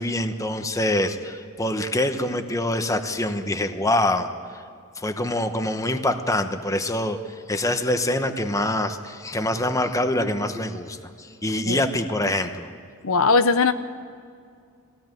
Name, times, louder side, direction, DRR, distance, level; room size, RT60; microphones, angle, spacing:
voice 1, 0.0-4.3 4.5-4.6 5.0-7.2 7.5-12.7, left 1 dB, 15° left, 7 dB, 1.0 m, -25 dB
voice 2, 13.0-13.7, left 4 dB, 70° left, 10 dB, 0.8 m, -19 dB
20.5 x 16.5 x 9.2 m, 2.3 s
head